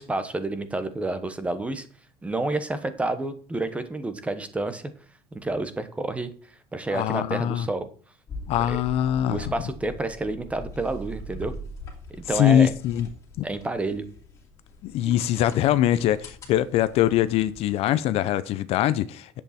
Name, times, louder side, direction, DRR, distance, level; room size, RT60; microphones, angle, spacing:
voice 1, 0.0-1.9 2.2-4.8 5.3-6.3 6.7-7.9 8.7-8.8 9.3-11.5 12.3-12.7 13.4-14.0, right 2 dB, 10° right, 1.1 m, -29 dB
voice 2, 6.9-7.7 8.5-9.5 12.3-13.1 14.8-19.4, left 11 dB, 50° left, 0.6 m, -23 dB
sound 1, 8.3-17.8, left 1 dB, 25° left, 3.2 m, -42 dB
10.0 x 8.4 x 4.3 m
cardioid pair, 170°, 13 cm